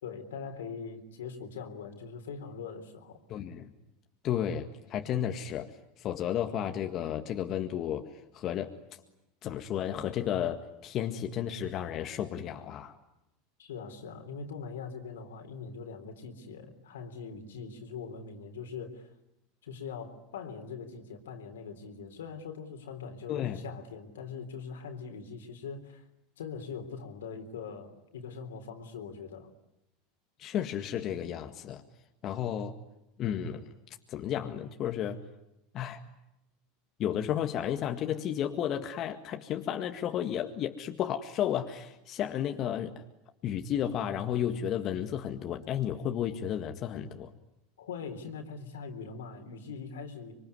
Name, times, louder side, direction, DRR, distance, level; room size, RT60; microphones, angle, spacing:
voice 1, 0.0-3.2 13.6-19.1 19.6-26.0 26.4-29.5 47.8-50.3, left 5 dB, 85° left, 6 dB, 3.7 m, -42 dB
voice 2, 3.3-3.7 4.2-5.7 6.0-8.7 9.4-13.0 23.3-23.6 30.4-31.8 32.2-32.8 33.2-33.6 34.1-35.2 35.7-36.0 37.0-42.9 43.4-47.3, left 10 dB, 45° left, 5 dB, 1.9 m, -32 dB
25.5 x 24.0 x 9.6 m, 0.87 s
hypercardioid pair, 95°, 0 cm